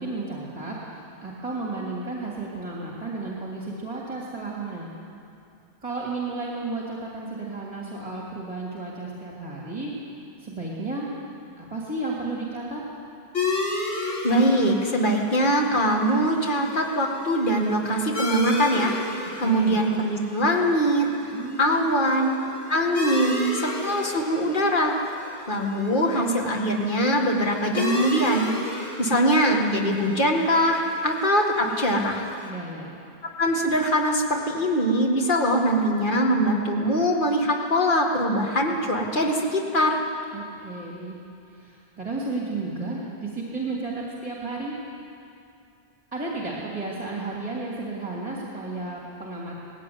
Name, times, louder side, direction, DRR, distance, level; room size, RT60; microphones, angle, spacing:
voice 1, 0.0-4.9 5.8-9.9 10.4-11.1 11.6-12.8 19.4-19.8 21.3-22.0 32.4-33.0 40.3-41.2 41.5-44.8 46.1-49.6, right 3 dB, 35° right, -4 dB, 2.9 m, -33 dB
sound 1, 13.3-32.5, left 2 dB, 70° left, 3.1 m, -34 dB
voice 2, 14.2-19.0 19.4-21.1 21.6-22.4 22.7-24.9 25.5-32.3 33.4-40.0, equal, 50° left, 0 dB, 2.1 m, -22 dB
19.0 x 16.5 x 9.6 m, 2.5 s
omnidirectional pair, 1.1 m